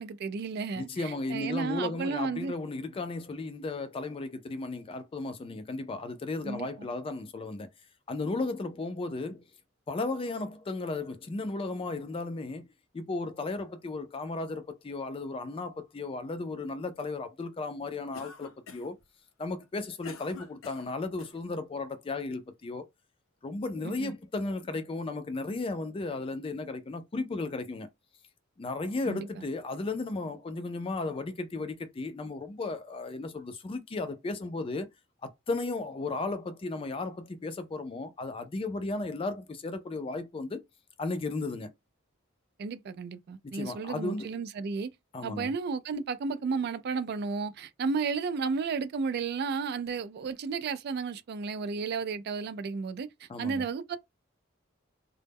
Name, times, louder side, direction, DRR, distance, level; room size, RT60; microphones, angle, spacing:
voice 1, 0.0-2.5 6.4-6.9 23.8-24.1 29.1-29.4 42.6-44.9 45.2-54.0, right 5 dB, 50° right, 0.3 m, -33 dB
voice 2, 0.7-7.7 8.1-9.5 9.9-12.7 12.9-19.0 19.4-22.9 23.4-27.9 28.6-34.9 35.2-40.6 41.0-41.7 43.4-44.3 45.1-45.5 53.3-53.7, left 3 dB, 25° left, 0.3 m, -35 dB
Cough, 18.1-19.0 19.6-21.4, left 5 dB, 80° left, 0.5 m, -47 dB
2.0 x 2.0 x 3.4 m
head